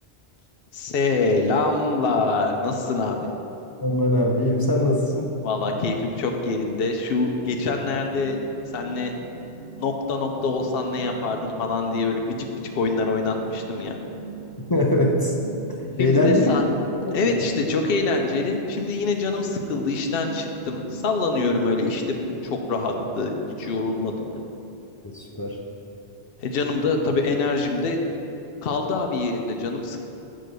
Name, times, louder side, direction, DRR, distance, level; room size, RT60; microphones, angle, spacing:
voice 1, 0.7-3.2 5.4-8.4 8.7-9.1 9.8-12.4 12.7-14.0 16.0-16.6 17.1-23.3 23.6-24.3 26.4-28.0 28.6-30.0, left 3 dB, 65° left, 3 dB, 0.9 m, -25 dB
voice 2, 3.8-5.3 14.7-15.3 16.0-16.6 17.0-17.3 25.0-25.6, left 1 dB, 25° left, -1 dB, 0.5 m, -21 dB
sound 1, 7.4-24.4, right 4 dB, 55° right, 1.0 m, -41 dB
7.8 x 3.7 x 6.6 m, 2.9 s
omnidirectional pair, 1.1 m